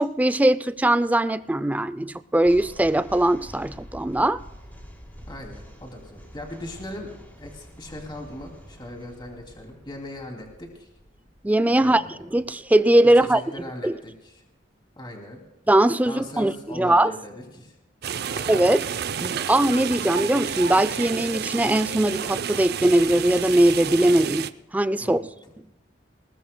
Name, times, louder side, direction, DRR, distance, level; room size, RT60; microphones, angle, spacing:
voice 1, 0.0-4.4 11.4-12.0 12.3-13.4 13.8-13.9 15.7-17.1 18.5-18.9 19.2-25.2, right 1 dB, 10° right, 0.4 m, -20 dB
sound 1, 2.4-13.7, equal, 10° left, 3.5 m, -47 dB
voice 2, 5.3-10.9 11.8-12.2 13.1-14.4 15.0-15.4 16.0-17.7 18.3-18.7 25.0-25.3, left 1 dB, 25° left, 2.6 m, -39 dB
sound 2, 18.0-24.5, right 7 dB, 60° right, 0.5 m, -30 dB
20.5 x 20.0 x 2.2 m
head